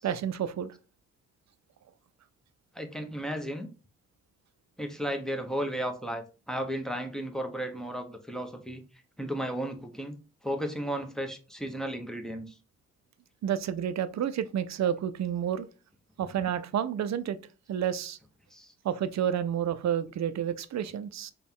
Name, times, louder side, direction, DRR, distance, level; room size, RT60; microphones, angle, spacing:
voice 1, 0.0-0.7 13.4-15.7 16.2-17.4 17.7-18.2 18.8-21.3, right 9 dB, 65° right, 0.5 m, -30 dB
voice 2, 2.7-3.7 4.8-8.8 9.2-10.2 10.4-12.5 16.2-16.3 18.5-18.7, equal, ahead, 0.8 m, -34 dB
4.0 x 2.3 x 3.6 m
cardioid pair, 65°, 30 cm